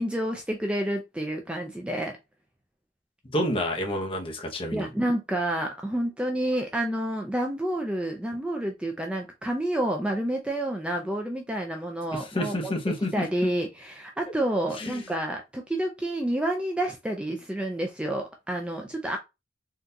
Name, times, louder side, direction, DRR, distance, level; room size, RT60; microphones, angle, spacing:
voice 1, 0.0-2.1 4.7-12.7 13.1-19.2, right 1 dB, 5° right, 0.4 m, -29 dB
voice 2, 3.2-4.9 12.1-13.2 14.8-15.0, left 1 dB, 30° left, 0.7 m, -29 dB
3.8 x 2.3 x 2.6 m
head